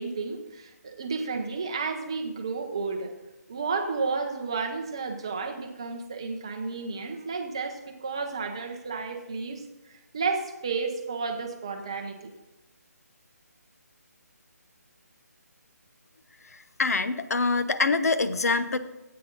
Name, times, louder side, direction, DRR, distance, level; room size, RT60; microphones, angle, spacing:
voice 1, 0.0-3.1 3.5-12.3, right 4 dB, 20° right, 4 dB, 0.7 m, -32 dB
voice 2, 16.8-18.8, left 3 dB, 65° left, 11 dB, 0.8 m, -24 dB
13.5 x 8.6 x 3.8 m, 1.0 s
hypercardioid pair, 180°, 9 cm